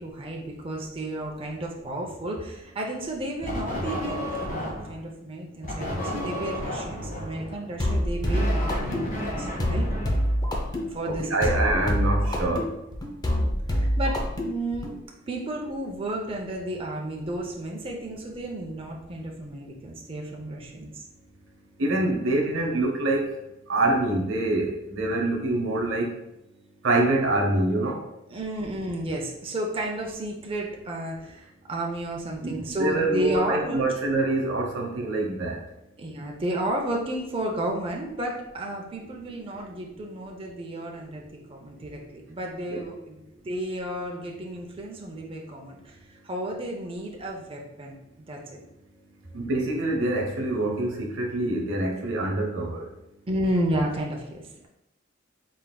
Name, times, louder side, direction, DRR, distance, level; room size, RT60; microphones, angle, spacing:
voice 1, 0.0-9.9 10.9-11.4 11.7-11.8 13.7-15.0 15.3-21.0 28.3-34.2 36.0-48.0 48.3-48.6 53.3-54.7, right 1 dB, 30° right, 0 dB, 0.5 m, -32 dB
sound 1, 3.4-5.0 5.6-10.8, left 1 dB, 45° left, 1.3 m, -32 dB
sound 2, 7.8-15.0, equal, 20° left, 0.5 m, -26 dB
voice 2, 11.0-12.7 21.8-23.3 23.7-26.1 26.8-28.0 32.4-35.6 42.7-42.8 49.3-52.9, right 2 dB, 80° right, 1 dB, 0.8 m, -25 dB
4.3 x 3.7 x 2.2 m, 0.87 s
head